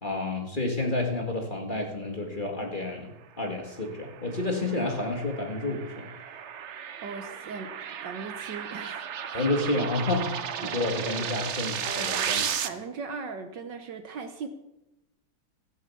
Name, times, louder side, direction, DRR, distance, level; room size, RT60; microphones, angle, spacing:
voice 1, 0.0-6.1 9.3-10.3 10.6-12.4, left 2 dB, 25° left, 1 dB, 2.0 m, -30 dB
sound 1, 3.8-12.7, right 8 dB, 85° right, 0.6 m, -34 dB
voice 2, 7.0-9.5 10.6-10.7 11.8-14.5, right 4 dB, 65° right, 7 dB, 1.5 m, -39 dB
16.0 x 7.6 x 7.1 m, 0.93 s
omnidirectional pair, 2.3 m